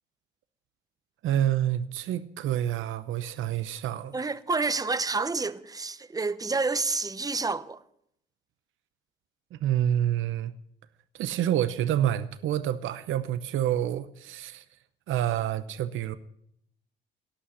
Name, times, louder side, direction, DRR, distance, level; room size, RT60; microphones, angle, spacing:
voice 1, 1.2-4.1 9.5-10.5 11.1-14.6 15.1-16.2, right 11 dB, 80° right, 0.8 m, -28 dB
voice 2, 4.1-7.8, right 4 dB, 20° right, 0.8 m, -29 dB
17.5 x 6.3 x 9.5 m
cardioid pair, 90°, 20 cm